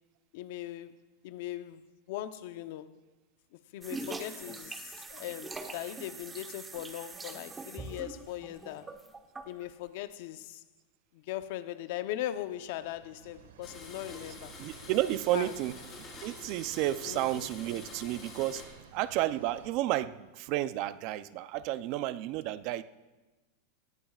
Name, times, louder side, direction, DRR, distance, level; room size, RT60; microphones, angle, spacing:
voice 1, 0.3-0.9 1.2-3.0 3.5-8.9 9.5-10.6 11.1-14.5 15.3-15.6 17.1-17.5, left 13 dB, 60° left, 0.7 m, -39 dB
sound 1, 3.8-9.6, right 3 dB, 15° right, 1.0 m, -43 dB
sound 2, 12.1-19.7, right 8 dB, 85° right, 1.6 m, -53 dB
Domestic sounds home sounds, 13.6-18.6, left 4 dB, 25° left, 3.9 m, -48 dB
voice 2, 14.6-18.7 18.9-22.8, right 14 dB, 45° right, 0.5 m, -32 dB
21.5 x 19.0 x 2.4 m
supercardioid pair, 145°, 0 cm